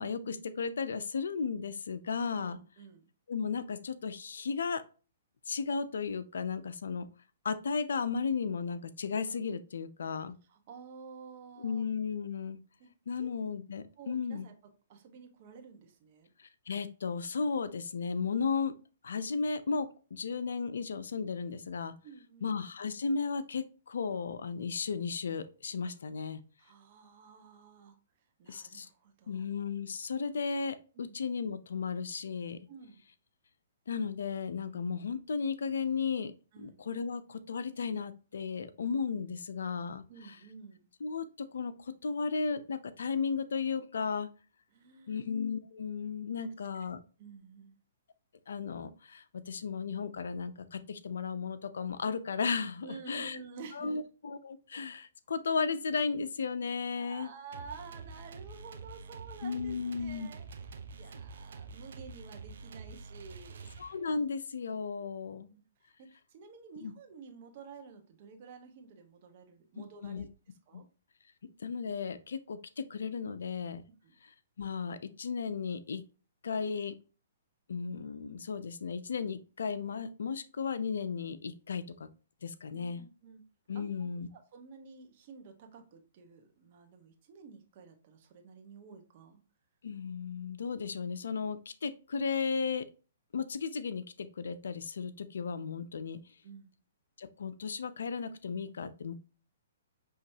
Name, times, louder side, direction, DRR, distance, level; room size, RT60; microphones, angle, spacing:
voice 1, 0.0-2.6 3.3-4.8 5.5-7.1 7.4-10.4 11.6-12.6 13.1-14.5 16.4-18.8 19.0-22.0 22.4-26.4 28.5-28.9 29.3-32.6 33.9-36.3 36.6-40.4 41.0-44.3 45.1-47.0 48.5-53.4 53.7-57.3 59.4-60.3 63.8-65.5 66.8-66.9 70.0-70.3 70.7-70.8 71.6-73.8 74.2-76.0 76.4-76.9 77.7-82.1 82.4-83.0 83.7-84.3 89.8-92.9 93.3-96.2 97.2-99.2, left 5 dB, 80° left, 12 dB, 0.5 m, -35 dB
voice 2, 2.4-3.0 10.5-11.9 12.8-12.9 13.2-13.3 14.0-14.5 14.9-16.3 22.0-22.6 26.6-27.9 28.4-29.4 30.9-31.2 32.7-33.0 36.5-36.8 40.1-40.9 44.7-45.3 47.2-47.8 52.8-54.0 57.0-60.4 60.9-63.7 65.4-65.6 66.0-70.3 70.7-70.8 74.0-74.1 82.7-83.4 83.7-83.9 84.5-89.4 96.4-96.7, right 5 dB, 45° right, 5 dB, 1.0 m, -51 dB
sound 1, 57.5-64.2, right 4 dB, 70° right, 0.7 m, -47 dB
5.7 x 3.1 x 2.7 m, 0.35 s
hypercardioid pair, 140°, 0 cm